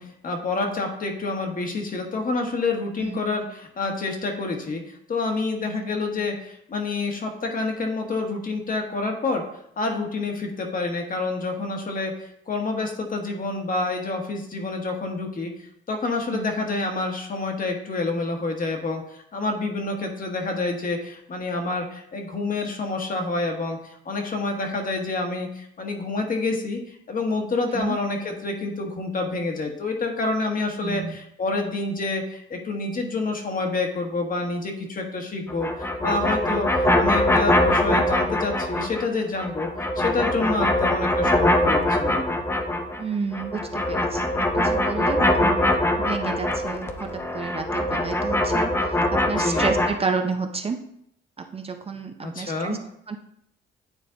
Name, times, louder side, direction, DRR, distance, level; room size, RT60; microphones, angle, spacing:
voice 1, 0.0-9.4 9.8-39.7 39.9-42.3 49.4-49.7 52.2-52.8, left 3 dB, 45° left, 3 dB, 1.3 m, -28 dB
voice 2, 30.8-31.2 36.5-36.6 43.0-48.7 49.1-50.8 51.5-52.8 53.1-53.2, right 4 dB, 30° right, 5 dB, 0.6 m, -30 dB
sound 1, 35.5-39.1 39.4-43.0 43.3-49.9, left 1 dB, 10° left, 0.7 m, -23 dB
9.0 x 3.4 x 3.8 m, 0.72 s
cardioid pair, 90°, 20 cm